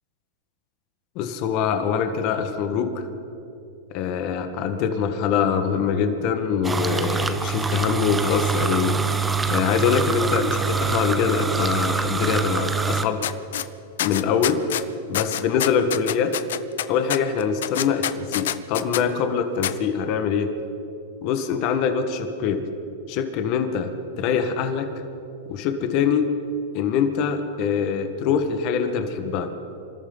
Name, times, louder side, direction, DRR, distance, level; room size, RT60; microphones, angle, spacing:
voice 1, 1.1-3.0 3.9-9.0 9.5-13.2 14.0-14.8 15.1-16.3 16.9-20.5 21.2-22.6 23.1-24.9 25.5-26.3 26.7-29.5, left 7 dB, 45° left, 7 dB, 1.6 m, -24 dB
sound 1, 6.6-13.0, right 5 dB, 10° right, 0.8 m, -25 dB
sound 2, 13.2-13.7 14.0-14.8 15.1-19.0 19.6-19.7, left 11 dB, 75° left, 0.6 m, -26 dB
27.0 x 13.5 x 4.0 m, 2.7 s
hypercardioid pair, 125°, 0 cm